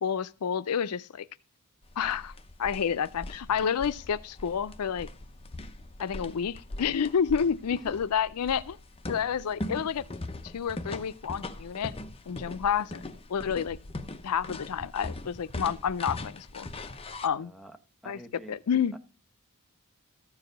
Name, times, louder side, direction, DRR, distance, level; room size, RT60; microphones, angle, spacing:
voice 1, 0.0-1.3 2.0-2.3 2.6-5.1 6.0-8.8 9.1-10.0 10.4-12.0 12.3-13.0 13.3-13.8 14.2-16.7 17.2-17.5 18.1-18.2 18.5-19.0, left 7 dB, 85° left, 0.5 m, -29 dB
sound 1, 1.8-17.3, left 2 dB, 25° left, 0.7 m, -41 dB
voice 2, 17.4-17.8 18.0-18.6 18.9-19.0, equal, ahead, 0.9 m, -46 dB
14.0 x 4.8 x 6.4 m
head